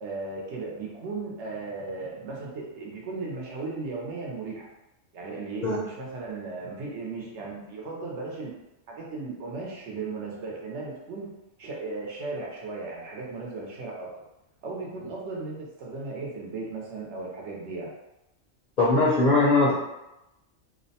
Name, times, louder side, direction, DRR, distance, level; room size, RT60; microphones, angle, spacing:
voice 1, 0.0-4.7 5.1-8.5 8.9-11.3 11.6-14.1 14.6-18.0 19.5-19.8, right 3 dB, 70° right, -3 dB, 0.9 m, -36 dB
voice 2, 18.8-19.8, left 2 dB, 50° left, -7 dB, 0.5 m, -20 dB
2.6 x 2.1 x 2.7 m, 0.93 s
omnidirectional pair, 1.3 m